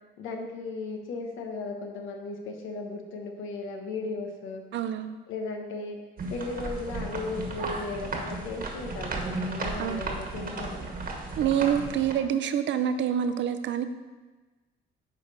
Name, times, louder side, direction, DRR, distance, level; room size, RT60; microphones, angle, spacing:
voice 1, 0.2-4.6 5.3-6.0 6.3-10.9, left 3 dB, 85° left, 3 dB, 1.1 m, -36 dB
voice 2, 4.7-5.2 9.8-10.0 11.4-13.8, right 9 dB, 65° right, 9 dB, 0.6 m, -26 dB
sound 1, 6.2-12.1, right 2 dB, 45° right, 1.4 m, -34 dB
9.7 x 3.5 x 5.3 m, 1.2 s
cardioid pair, 90°, 20 cm